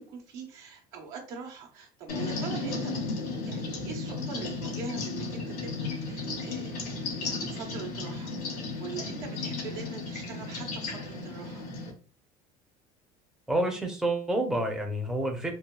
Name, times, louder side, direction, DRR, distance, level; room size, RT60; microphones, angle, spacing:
voice 1, 0.0-11.6, right 5 dB, 65° right, 0 dB, 1.0 m, -43 dB
sound 1, 2.1-11.9, left 3 dB, 80° left, 1.1 m, -34 dB
voice 2, 13.5-15.5, right 1 dB, 5° right, 3 dB, 0.6 m, -28 dB
3.2 x 2.2 x 2.2 m, 0.37 s
hypercardioid pair, 80°, 20 cm